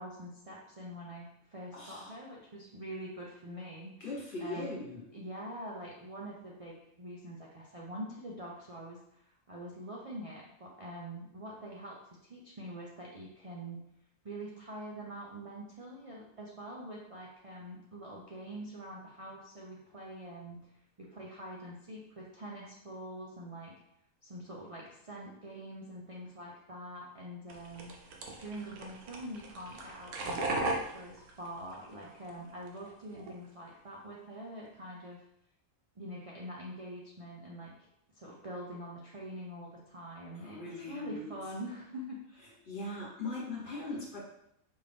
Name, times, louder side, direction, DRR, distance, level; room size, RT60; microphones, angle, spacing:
voice 1, 0.0-4.1 4.4-4.7 5.1-12.0 12.3-13.8 14.2-20.6 21.0-23.7 24.2-27.9 28.4-35.2 36.0-37.9 38.1-40.6 40.9-42.2, right 1 dB, 65° right, -4 dB, 0.3 m, -45 dB
voice 2, 1.7-2.1 4.0-5.0 40.3-41.3 42.6-44.2, left 2 dB, 40° left, -5 dB, 1.3 m, -39 dB
sound 1, 27.5-32.3 32.6-33.3, right 2 dB, 85° right, 1.2 m, -38 dB
5.3 x 2.6 x 3.4 m, 0.77 s
omnidirectional pair, 1.5 m